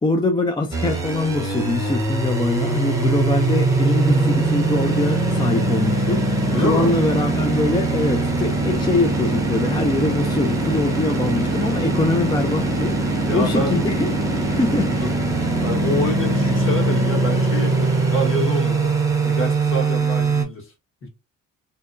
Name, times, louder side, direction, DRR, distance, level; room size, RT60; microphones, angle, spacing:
voice 1, 0.0-14.1 14.5-15.1, left 2 dB, 15° left, 0.4 m, -23 dB
sound 1, 0.7-20.4, right 2 dB, 10° right, 0.7 m, -21 dB
voice 2, 4.0-4.4 6.5-6.9 13.2-13.7 14.9-15.1 15.6-18.9 19.2-20.7 21.0-21.1, left 1 dB, 45° left, 1.3 m, -26 dB
2.7 x 2.2 x 2.4 m
cardioid pair, 90°, 30 cm